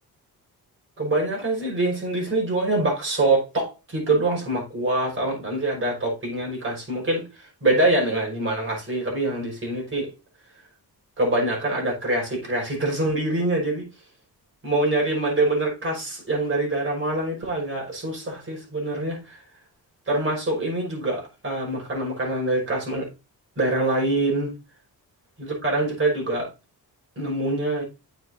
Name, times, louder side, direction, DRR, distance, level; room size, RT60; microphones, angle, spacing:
voice 1, 1.0-10.1 11.2-13.8 14.6-19.4 20.1-23.1 23.6-24.5 25.4-26.5 27.2-27.8, right 2 dB, 35° right, 5.3 m, -25 dB
9.8 x 7.1 x 2.7 m
cardioid pair, 90°, 37 cm